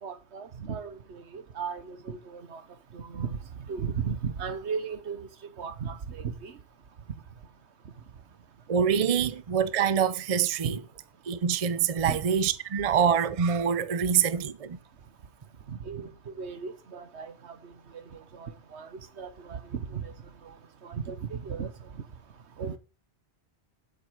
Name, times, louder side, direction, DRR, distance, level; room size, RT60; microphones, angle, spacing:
voice 1, 0.0-6.6 7.1-7.2 7.8-7.9 9.2-9.3 10.6-10.8 12.0-12.3 14.0-14.1 15.7-22.8, right 6 dB, 80° right, 1.4 m, -37 dB
voice 2, 8.7-10.8 11.3-14.8, right 7 dB, 40° right, 0.6 m, -25 dB
8.3 x 7.8 x 6.5 m
omnidirectional pair, 1.1 m